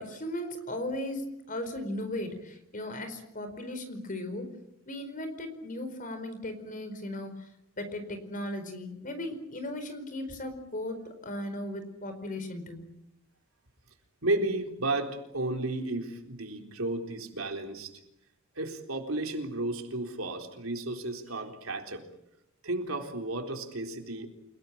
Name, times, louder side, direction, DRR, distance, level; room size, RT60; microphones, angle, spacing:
voice 1, 0.0-4.5 4.9-7.5 7.8-12.8, left 1 dB, 40° left, 9 dB, 4.7 m, -37 dB
voice 2, 14.2-17.9 18.5-22.1 22.6-24.3, right 2 dB, 75° right, 3 dB, 4.0 m, -33 dB
29.0 x 18.0 x 8.7 m, 0.82 s
head